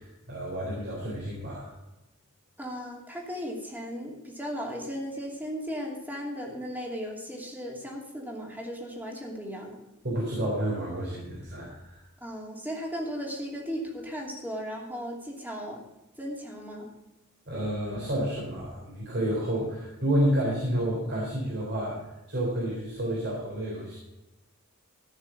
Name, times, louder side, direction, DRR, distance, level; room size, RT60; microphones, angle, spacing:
voice 1, 0.0-1.7 10.0-12.0 17.5-22.0 22.3-24.0, right 1 dB, 50° right, -4 dB, 3.8 m, -30 dB
voice 2, 2.6-9.8 12.2-15.8 16.2-16.9, equal, 10° right, -1 dB, 2.7 m, -36 dB
14.5 x 6.7 x 6.1 m, 0.96 s
head